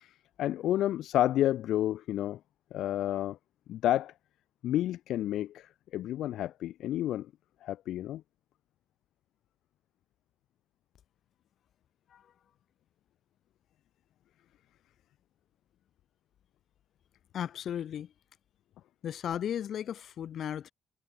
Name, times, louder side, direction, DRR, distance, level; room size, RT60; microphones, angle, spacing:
voice 1, 0.0-2.4 2.7-3.4 3.7-4.1 4.6-7.3 7.6-8.2, left 13 dB, 80° left, 1.9 m, -30 dB
voice 2, 17.3-18.1 19.0-20.7, left 9 dB, 65° left, 7.1 m, -35 dB
cardioid pair, 90°, 0 cm